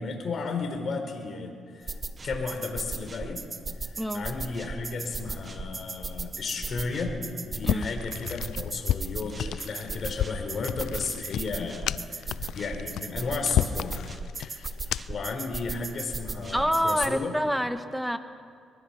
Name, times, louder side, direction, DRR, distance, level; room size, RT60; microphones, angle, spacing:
voice 1, 0.0-3.4 3.8-7.1 7.4-14.1 14.4-17.3, left 4 dB, 50° left, 4 dB, 4.4 m, -34 dB
sound 1, 1.9-17.1, right 3 dB, 30° right, 1.3 m, -37 dB
voice 2, 4.0-4.3 7.6-7.9 16.5-18.2, equal, ahead, 8 dB, 1.4 m, -27 dB
sound 2, 7.6-15.3, left 12 dB, 80° left, 0.4 m, -31 dB
23.0 x 23.0 x 5.9 m, 2.4 s
cardioid pair, 90°, 0 cm